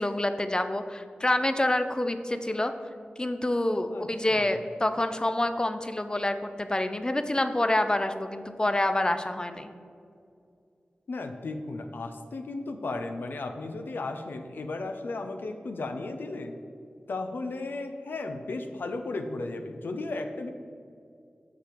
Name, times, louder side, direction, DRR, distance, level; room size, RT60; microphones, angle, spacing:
voice 1, 0.0-2.7 3.2-9.7, left 1 dB, 25° left, 9 dB, 0.5 m, -27 dB
voice 2, 3.9-4.6 11.1-16.6 17.1-20.5, left 2 dB, 80° left, 6 dB, 0.5 m, -35 dB
6.0 x 5.7 x 5.0 m, 2.4 s
cardioid pair, 45°, 3 cm